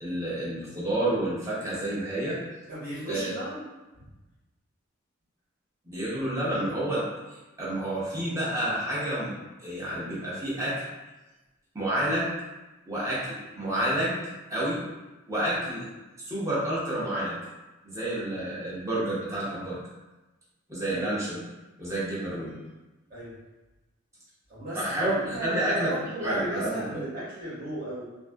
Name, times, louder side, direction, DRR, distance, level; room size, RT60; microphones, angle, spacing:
voice 1, 0.0-2.4 3.1-3.4 5.9-7.0 7.3-9.3 9.6-10.8 11.7-12.3 12.9-14.2 14.5-14.8 15.3-15.9 16.2-17.4 17.8-19.8 20.7-21.4 21.8-22.6 24.7-27.0, right 1 dB, 15° right, -8 dB, 0.7 m, -29 dB
voice 2, 2.7-3.7 4.0-4.1 20.9-21.1 23.1-23.3 24.5-28.0, right 1 dB, 45° right, -10 dB, 1.2 m, -35 dB
2.5 x 2.4 x 2.2 m, 1.1 s
head